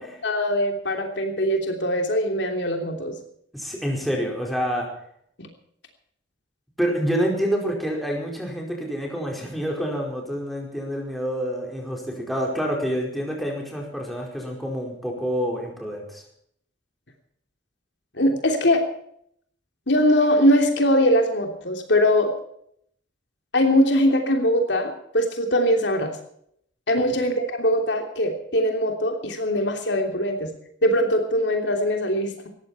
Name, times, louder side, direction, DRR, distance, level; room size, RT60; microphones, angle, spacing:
voice 1, 0.2-3.1 5.4-5.5 18.2-18.8 19.9-22.3 23.5-26.2 26.9-30.5 30.8-32.5, equal, 70° left, 4 dB, 3.1 m, -21 dB
voice 2, 3.5-4.9 6.8-16.2 27.0-27.2, equal, ahead, -1 dB, 4.8 m, -27 dB
19.0 x 15.0 x 4.4 m, 0.68 s
head